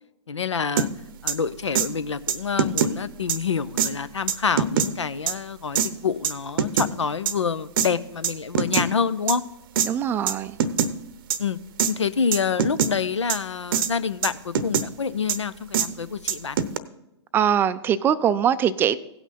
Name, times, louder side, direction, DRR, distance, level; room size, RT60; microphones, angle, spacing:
voice 1, 0.3-0.9 1.2-9.4 11.4-11.6 11.9-16.6, left 6 dB, 80° left, 0.6 m, -27 dB
sound 1, 0.8-0.9 1.3-1.4 1.7-1.9 2.3-2.9 3.3-3.4 3.8-3.9 4.3-4.9 5.3-5.4 5.8-5.9 6.2-6.9 7.3-7.4 7.8-7.9 8.2-8.9 9.3-9.4 9.8-9.9 10.3-10.4 10.6-10.9 11.3-11.4 11.8-11.9 12.3-12.9 13.3-13.4 13.7-13.9 14.2-14.9 15.3-15.4 15.7-15.9 16.3-16.8, right 7 dB, 50° right, 0.7 m, -22 dB
voice 2, 9.8-10.6 17.3-19.0, right 9 dB, 15° right, 0.4 m, -22 dB
16.5 x 6.0 x 4.2 m
figure-of-eight pair, 115°, 15 cm